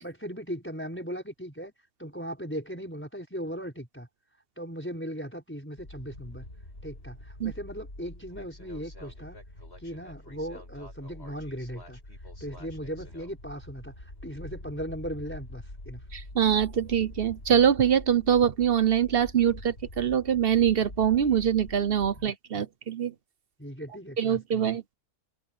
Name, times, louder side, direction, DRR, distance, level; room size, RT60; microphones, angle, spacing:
voice 1, 0.0-1.7 2.0-4.1 4.6-6.5 6.8-9.4 9.8-12.0 12.4-16.0 22.2-22.7 23.6-24.8, equal, 10° left, 5.1 m, -38 dB
sound 1, 5.8-22.3, left 1 dB, 45° left, 7.0 m, -45 dB
voice 2, 16.1-23.1 24.2-24.9, right 8 dB, 50° right, 0.8 m, -24 dB
open air
omnidirectional pair, 1.5 m